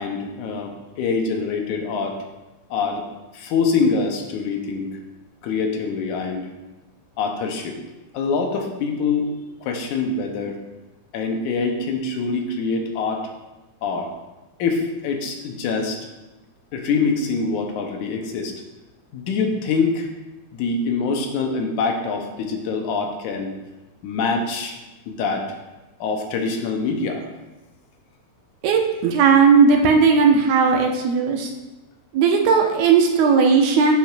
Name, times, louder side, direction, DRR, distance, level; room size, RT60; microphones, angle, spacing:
voice 1, 0.0-2.2 2.7-3.0 3.3-4.9 5.4-6.5 7.2-7.8 8.1-9.3 9.6-10.6 11.1-13.3 13.8-14.1 14.6-16.0 16.7-18.6 19.1-20.1 20.5-23.5 24.0-24.8 25.1-25.5 26.0-27.2, left 4 dB, 90° left, 3 dB, 2.3 m, -24 dB
voice 2, 28.6-31.5 32.1-34.0, right 5 dB, 75° right, 2 dB, 1.8 m, -16 dB
9.1 x 7.2 x 2.5 m, 1.1 s
omnidirectional pair, 3.4 m